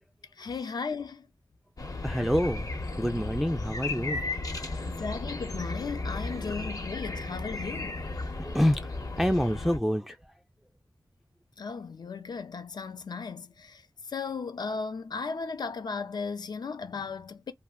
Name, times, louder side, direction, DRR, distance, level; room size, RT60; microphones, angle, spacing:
voice 1, 0.4-1.3 4.8-8.1 11.6-17.5, left 5 dB, 70° left, 0.5 m, -36 dB
sound 1, 1.8-9.8, left 2 dB, 55° left, 0.8 m, -35 dB
voice 2, 2.0-2.7 3.0-4.2 4.6-5.0 6.3-6.6 8.2-10.2, equal, ahead, 0.3 m, -28 dB
2.4 x 2.1 x 3.5 m
cardioid pair, 45°, 7 cm